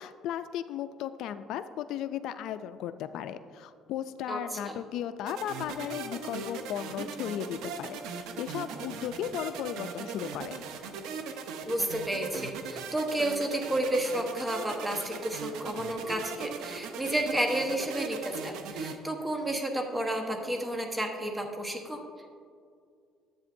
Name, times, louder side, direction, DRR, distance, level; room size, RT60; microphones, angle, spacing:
voice 1, 0.0-10.7, left 10 dB, 70° left, 11 dB, 0.3 m, -36 dB
sound 1, 5.3-19.0, right 5 dB, 80° right, 0.6 m, -39 dB
voice 2, 11.7-22.0, right 1 dB, 15° right, 3 dB, 1.1 m, -31 dB
10.5 x 8.2 x 2.6 m, 2.2 s
cardioid pair, 115°, 0 cm